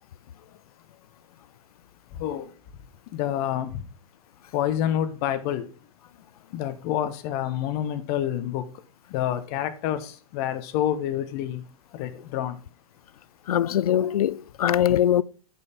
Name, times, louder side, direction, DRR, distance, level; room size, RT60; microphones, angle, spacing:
voice 1, 2.1-2.5 3.1-3.8 4.5-5.7 6.5-8.7 9.1-11.6 11.9-12.6, left 11 dB, 40° left, 1.0 m, -28 dB
voice 2, 13.5-15.2, left 10 dB, 70° left, 0.4 m, -22 dB
9.3 x 5.6 x 3.5 m
figure-of-eight pair, 105°, 19 cm